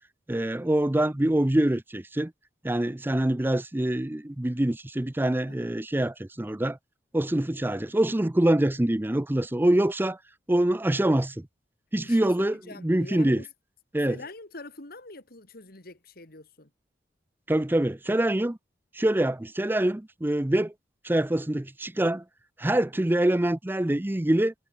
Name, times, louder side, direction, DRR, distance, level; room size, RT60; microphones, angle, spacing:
voice 1, 0.3-2.3 2.6-6.8 7.1-10.2 10.5-11.5 11.9-13.4 13.9-14.2 17.5-18.6 18.9-20.7 21.0-22.2 22.6-24.5, right 1 dB, 10° right, 0.5 m, -25 dB
voice 2, 12.0-13.4 14.1-16.7, left 2 dB, 55° left, 2.9 m, -44 dB
head